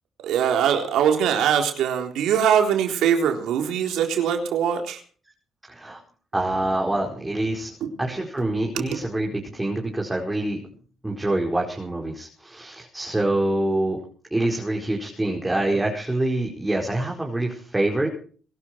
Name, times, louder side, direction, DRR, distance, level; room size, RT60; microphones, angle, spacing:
voice 1, 0.2-5.0 7.8-7.9 8.7-8.8, right 8 dB, 85° right, 4 dB, 3.9 m, -22 dB
voice 2, 5.7-6.0 6.3-7.7 8.0-10.6 11.0-14.0 14.3-18.1, right 1 dB, 10° right, -1 dB, 4.8 m, -25 dB
23.0 x 12.5 x 4.6 m, 0.43 s
cardioid pair, 90°, 0 cm